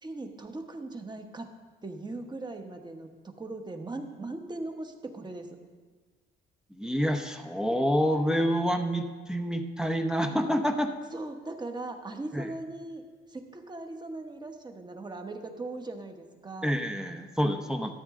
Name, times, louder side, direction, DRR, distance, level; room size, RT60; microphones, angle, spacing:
voice 1, 0.0-1.5 1.8-3.1 3.4-5.6 11.1-13.0 13.3-16.8, right 2 dB, 20° right, 4 dB, 1.2 m, -39 dB
voice 2, 6.7-10.9 12.3-12.5 16.6-17.9, equal, 5° right, 5 dB, 0.8 m, -27 dB
13.0 x 8.8 x 3.8 m, 1.4 s
cardioid pair, 90°, 20 cm